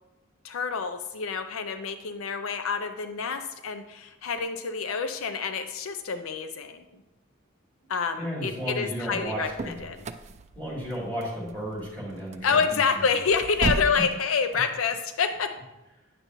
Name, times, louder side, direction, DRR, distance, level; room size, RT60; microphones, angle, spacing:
voice 1, 0.4-6.8 7.9-10.0 12.4-15.5, left 5 dB, 85° left, 8 dB, 0.5 m, -28 dB
voice 2, 8.2-9.8 10.6-12.8, equal, 10° left, -6 dB, 2.9 m, -33 dB
sound 1, 9.1-14.1, right 3 dB, 35° right, 0.3 m, -35 dB
9.2 x 6.7 x 3.0 m, 1.0 s
head